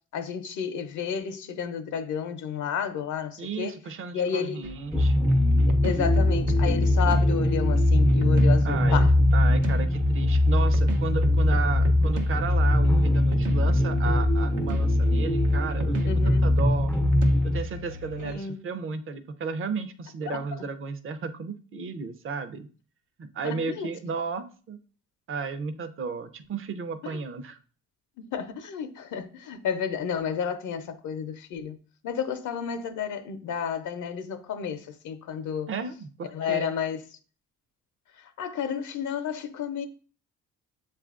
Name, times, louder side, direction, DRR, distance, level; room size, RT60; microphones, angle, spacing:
voice 1, 0.1-3.8 4.1-4.7 5.8-9.1 16.1-16.6 18.2-18.7 20.3-20.4 23.4-23.9 27.0-27.2 28.2-31.8 32.0-35.7 36.3-37.0 38.2-39.9, left 7 dB, 75° left, 0.6 m, -31 dB
voice 2, 3.4-5.3 8.6-9.0 9.3-16.1 16.4-16.9 17.4-22.7 23.2-24.8 25.3-27.6 35.7-36.7, right 5 dB, 45° right, 0.5 m, -34 dB
sound 1, 4.6-18.4, right 3 dB, 80° right, 0.7 m, -37 dB
sound 2, 4.9-17.6, left 1 dB, 5° left, 0.3 m, -21 dB
7.1 x 2.4 x 2.4 m
cardioid pair, 90°, 30 cm